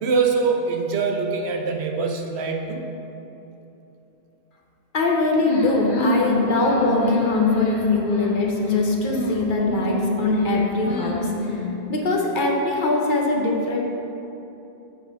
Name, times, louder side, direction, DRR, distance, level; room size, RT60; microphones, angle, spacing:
voice 1, 0.0-2.8, right 4 dB, 80° right, 3 dB, 1.0 m, -23 dB
voice 2, 4.9-11.6 11.9-13.8, left 2 dB, 55° left, 0 dB, 0.9 m, -23 dB
sound 1, 5.4-11.8, left 2 dB, 90° left, 1.3 m, -24 dB
7.1 x 4.0 x 5.8 m, 3.0 s
omnidirectional pair, 1.1 m